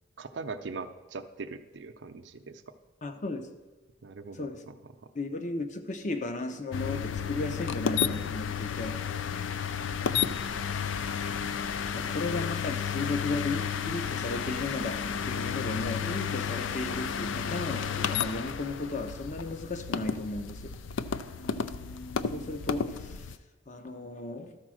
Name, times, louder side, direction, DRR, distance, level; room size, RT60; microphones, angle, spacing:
voice 1, 0.2-2.6 4.0-4.7 12.0-12.5 20.1-20.2, right 4 dB, 70° right, 0.5 m, -41 dB
voice 2, 3.0-3.6 4.3-4.7 5.1-9.0 11.9-20.7 22.3-23.3 23.7-24.6, left 2 dB, 40° left, 0.7 m, -35 dB
sound 1, 6.7-23.4, left 7 dB, 85° left, 0.4 m, -32 dB
12.5 x 4.2 x 6.2 m
head